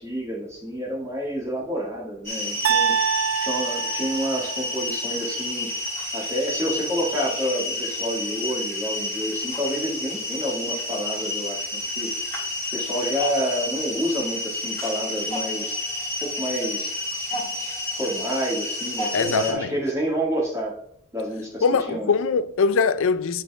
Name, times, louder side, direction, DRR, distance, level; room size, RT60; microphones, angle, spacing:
voice 1, 0.0-3.0 3.4-5.8 6.1-12.4 12.7-15.8 16.2-16.9 17.3-17.5 18.0-20.7 21.1-22.1, equal, 15° right, 2.0 m, -29 dB
sound 1, 2.2-19.5, left 2 dB, 15° left, 3.4 m, -30 dB
sound 2, 2.6-4.8, right 7 dB, 80° right, 0.4 m, -25 dB
voice 2, 19.1-19.7 21.6-23.4, left 5 dB, 65° left, 0.5 m, -22 dB
12.0 x 4.0 x 3.5 m
head